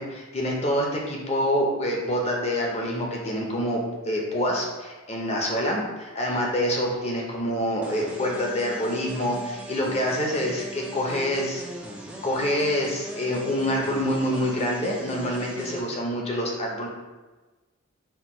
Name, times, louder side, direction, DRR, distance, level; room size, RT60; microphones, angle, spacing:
voice 1, 0.0-11.6 12.2-16.9, equal, 30° left, -1 dB, 0.6 m, -26 dB
sound 1, 7.8-15.8, right 1 dB, 5° right, 0.4 m, -40 dB
4.3 x 2.3 x 4.2 m, 1.2 s
head